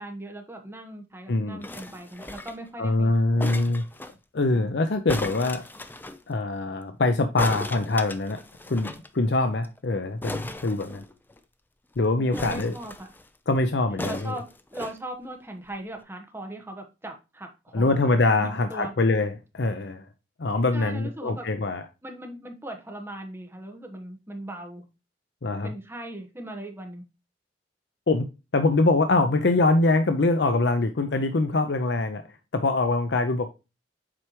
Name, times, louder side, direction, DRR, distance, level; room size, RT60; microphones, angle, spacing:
voice 1, 0.0-3.7 4.5-4.8 12.2-13.1 14.0-18.0 18.4-18.9 20.7-21.5 22.0-24.8 25.6-27.0, right 1 dB, 15° right, 1.3 m, -39 dB
voice 2, 1.3-1.6 2.8-3.8 4.3-5.7 6.3-8.4 8.7-11.0 12.0-12.7 13.5-14.4 17.7-20.0 20.4-21.8 25.4-25.7 28.1-28.2 28.5-32.2 32.5-33.5, left 2 dB, 65° left, 0.6 m, -23 dB
sound 1, 1.6-2.7 3.4-4.1 5.1-6.2 7.4-9.1 9.3-9.4 9.6-9.8 10.2-11.4 12.3-13.3 14.0-15.0 15.7-15.8, left 2 dB, 10° left, 0.5 m, -36 dB
7.6 x 4.8 x 3.0 m
head